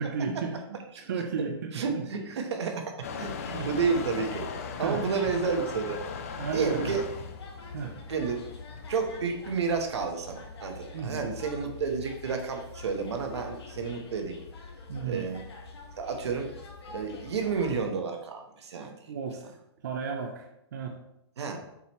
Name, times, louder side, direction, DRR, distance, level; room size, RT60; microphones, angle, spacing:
voice 1, 0.0-2.5 3.1-3.8 4.8-5.0 6.3-7.0 7.7-8.0 10.9-11.3 14.9-15.4 19.1-19.6 19.8-21.0, right 5 dB, 45° right, 2 dB, 0.6 m, -34 dB
voice 2, 1.7-4.5 4.8-6.0 6.5-7.0 8.1-8.4 8.9-14.4 15.0-15.4 16.0-16.5 16.9-18.9 21.4-21.6, right 5 dB, 75° right, 4 dB, 1.2 m, -31 dB
Motor vehicle (road) / Engine starting / Accelerating revving vroom, 3.0-8.9, left 6 dB, 30° left, 0.4 m, -39 dB
sound 1, 3.2-17.8, left 4 dB, 70° left, 1.5 m, -45 dB
6.8 x 4.5 x 3.1 m, 0.83 s
hypercardioid pair, 180°, 14 cm